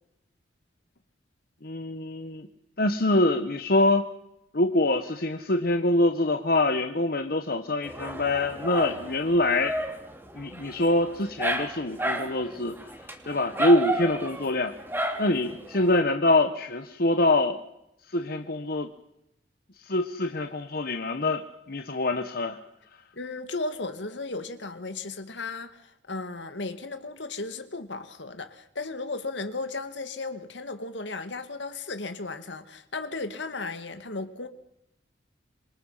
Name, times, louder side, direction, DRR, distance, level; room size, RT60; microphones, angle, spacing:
voice 1, 1.6-2.5 2.8-4.0 4.5-9.7 10.4-12.8 13.3-14.7 15.2-17.6 18.1-18.9 19.8-22.6, left 2 dB, 55° left, 1.3 m, -25 dB
Dog, 7.8-16.0, right 1 dB, 10° right, 2.9 m, -33 dB
voice 2, 23.1-34.5, left 3 dB, 70° left, 2.1 m, -35 dB
27.0 x 24.0 x 5.8 m
head